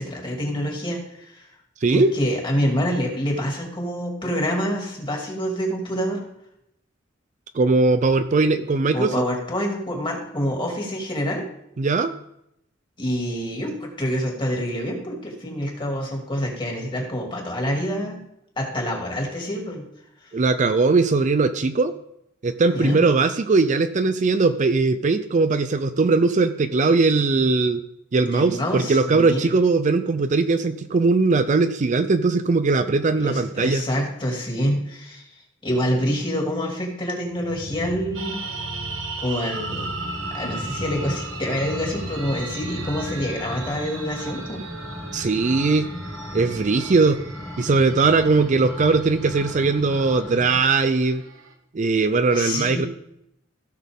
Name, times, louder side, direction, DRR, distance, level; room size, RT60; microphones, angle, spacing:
voice 1, 0.0-1.5 1.9-6.2 8.9-11.4 13.0-18.2 18.6-19.8 20.2-20.3 22.7-23.0 28.2-29.5 33.2-38.4 39.2-39.9 40.3-44.6 52.3-52.9, equal, 25° left, 0 dB, 2.4 m, -27 dB
voice 2, 7.5-9.1 11.8-12.1 20.3-21.9 22.4-27.8 28.1-33.8 45.1-45.9 46.3-47.2 47.6-51.2 51.7-52.9, right 3 dB, 40° right, 10 dB, 0.4 m, -20 dB
sound 1, 37.3-43.7, equal, 75° left, 1.5 m, -38 dB
sound 2, 38.1-51.5, right 4 dB, 80° right, 1.3 m, -37 dB
sound 3, 40.0-50.7, left 1 dB, 5° left, 1.3 m, -36 dB
16.0 x 6.2 x 3.6 m, 0.78 s
head